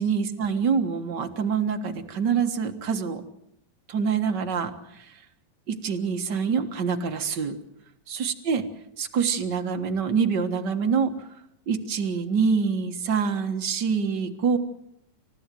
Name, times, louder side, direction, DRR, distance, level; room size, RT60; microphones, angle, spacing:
voice 1, 0.0-3.2 3.9-4.7 5.7-7.5 8.1-8.6 9.0-11.1 11.7-14.6, right 6 dB, 50° right, 5 dB, 1.4 m, -25 dB
28.0 x 14.5 x 7.7 m, 0.76 s
omnidirectional pair, 3.9 m